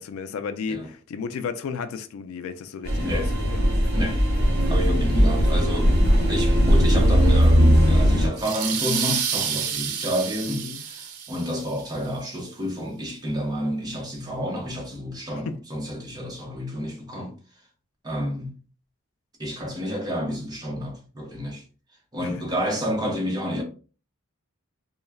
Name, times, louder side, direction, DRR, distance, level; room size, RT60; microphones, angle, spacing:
voice 1, 0.0-3.6 10.6-10.8 17.2-17.3 22.2-22.3, left 5 dB, 70° left, 0.3 m, -33 dB
sound 1, 2.8-8.3, equal, 45° right, 1.0 m, -19 dB
voice 2, 3.0-3.3 3.9-4.2 4.7-6.0 6.3-17.3 18.0-18.5 19.4-21.6 22.1-23.6, equal, 20° right, 0.6 m, -29 dB
sound 2, 8.4-11.8, right 7 dB, 85° right, 0.5 m, -29 dB
2.2 x 2.1 x 3.3 m
head